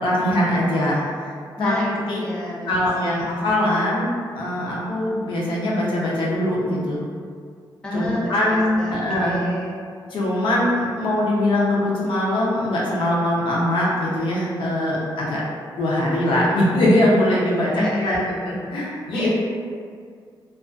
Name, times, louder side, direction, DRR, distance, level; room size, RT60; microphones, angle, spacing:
voice 1, 0.0-1.3 1.6-1.7 2.1-2.2 2.7-7.0 7.9-9.4 10.1-15.4 15.8-19.3, left 1 dB, 70° left, -5 dB, 0.6 m, -22 dB
voice 2, 1.6-3.2 7.8-9.8 17.7-18.2 19.1-19.3, left 1 dB, 10° left, -7 dB, 0.4 m, -29 dB
2.3 x 2.3 x 2.4 m, 2.1 s
wide cardioid pair, 155°, 9 cm